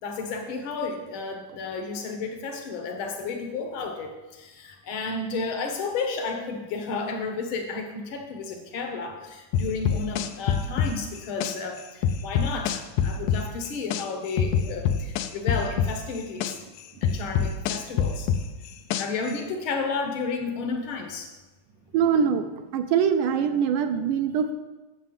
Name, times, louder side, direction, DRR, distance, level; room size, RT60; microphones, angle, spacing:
voice 1, 0.0-16.6 17.0-18.3 19.0-21.3, left 4 dB, 65° left, 3 dB, 1.2 m, -32 dB
sound 1, 9.5-11.5 12.0-14.0 14.4-16.5 17.0-19.3, left 8 dB, 90° left, 1.7 m, -24 dB
voice 2, 21.9-22.5 22.7-24.5, right 7 dB, 80° right, 9 dB, 1.9 m, -23 dB
9.5 x 7.2 x 7.4 m, 1.1 s
omnidirectional pair, 4.2 m